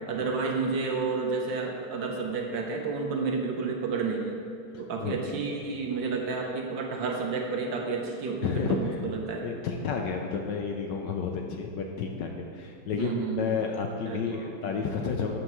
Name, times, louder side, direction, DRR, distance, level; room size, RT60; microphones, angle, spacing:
voice 1, 0.1-4.4 4.8-9.5 13.0-13.5 14.1-14.4, right 4 dB, 65° right, 1 dB, 1.4 m, -31 dB
voice 2, 4.7-5.5 8.4-9.0 9.4-15.4, left 5 dB, 70° left, 2 dB, 1.1 m, -31 dB
11.5 x 7.9 x 3.1 m, 2.5 s
omnidirectional pair, 2.4 m